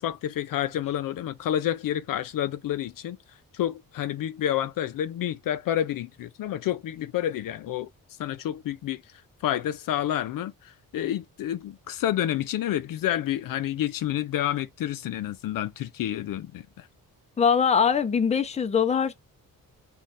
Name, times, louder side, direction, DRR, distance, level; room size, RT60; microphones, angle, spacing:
voice 1, 0.0-3.2 3.5-7.9 8.2-9.0 9.4-10.5 10.9-16.9, left 11 dB, 70° left, 0.5 m, -29 dB
voice 2, 17.4-19.1, left 7 dB, 20° left, 0.5 m, -22 dB
3.2 x 2.4 x 4.0 m
cardioid pair, 115°, 35 cm